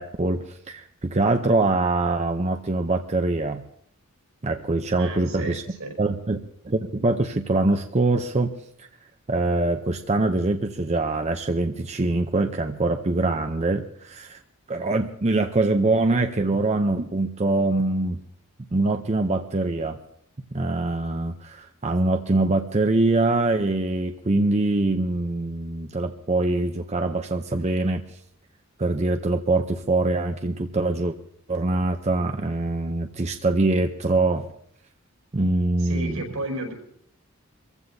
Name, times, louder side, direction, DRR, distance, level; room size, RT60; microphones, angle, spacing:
voice 1, 0.0-3.6 4.4-5.6 6.0-6.4 6.6-8.5 9.3-14.4 14.7-18.2 18.7-20.0 20.5-28.0 28.8-31.1 31.5-34.5 35.3-36.2, right 2 dB, 30° right, 6 dB, 0.6 m, -23 dB
voice 2, 4.9-5.9 35.8-36.7, right 1 dB, 85° right, 1 dB, 5.2 m, -33 dB
24.5 x 15.5 x 2.7 m, 0.68 s
head